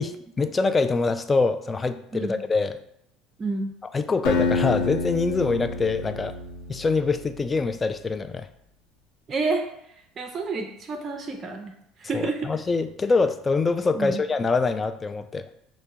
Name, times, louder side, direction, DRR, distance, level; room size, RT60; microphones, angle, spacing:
voice 1, 0.0-2.8 3.9-6.3 6.7-8.5 12.1-15.5, left 4 dB, 25° left, 10 dB, 0.3 m, -24 dB
voice 2, 3.4-3.7 9.3-9.6 10.2-12.5 13.9-14.2, right 3 dB, 35° right, 3 dB, 0.5 m, -29 dB
Acoustic guitar, 4.2-7.3, left 3 dB, 70° left, 0.8 m, -28 dB
5.4 x 2.1 x 3.5 m, 0.76 s
hypercardioid pair, 70°, 0 cm